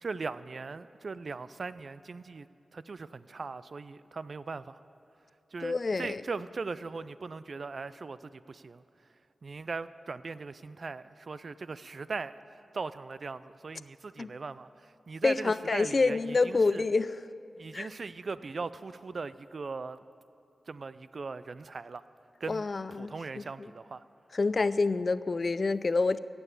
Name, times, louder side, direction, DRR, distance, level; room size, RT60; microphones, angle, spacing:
voice 1, 0.0-2.5 2.7-4.8 5.5-8.8 9.4-16.8 17.6-20.0 20.7-22.0 22.4-22.6 22.9-24.0, right 4 dB, 65° right, 15 dB, 0.4 m, -39 dB
voice 2, 5.6-6.2 14.2-14.3 15.2-17.2 17.7-17.9 22.5-23.4 24.3-26.2, left 3 dB, 55° left, 15 dB, 0.4 m, -27 dB
16.0 x 7.0 x 8.3 m, 2.8 s
cardioid pair, 40°, 0 cm